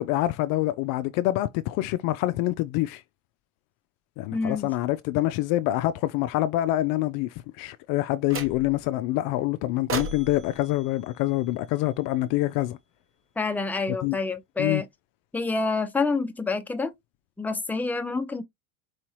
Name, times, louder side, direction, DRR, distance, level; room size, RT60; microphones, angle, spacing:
voice 1, 0.0-3.0 4.2-12.8 14.0-14.2 14.6-14.8, left 16 dB, 55° left, 0.5 m, -26 dB
voice 2, 4.3-4.7 13.4-14.9 15.3-16.9 17.4-18.4, left 4 dB, 5° left, 0.6 m, -27 dB
sound 1, 8.3-8.9 9.9-12.1, right 4 dB, 30° right, 1.1 m, -37 dB
4.7 x 2.9 x 3.1 m
hypercardioid pair, 90°, 41 cm